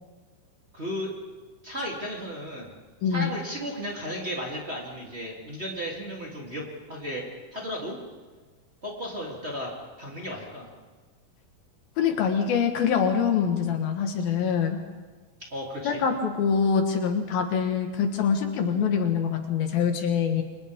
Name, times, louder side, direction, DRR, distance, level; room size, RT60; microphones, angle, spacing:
voice 1, 0.7-1.1 1.6-2.7 3.1-6.6 6.9-8.0 8.8-9.7 10.0-10.7 15.5-16.0, equal, 15° right, -4 dB, 3.3 m, -34 dB
voice 2, 3.0-3.3 12.0-14.8 15.8-20.4, left 6 dB, 75° left, 4 dB, 3.3 m, -24 dB
29.5 x 24.5 x 3.7 m, 1.4 s
omnidirectional pair, 4.3 m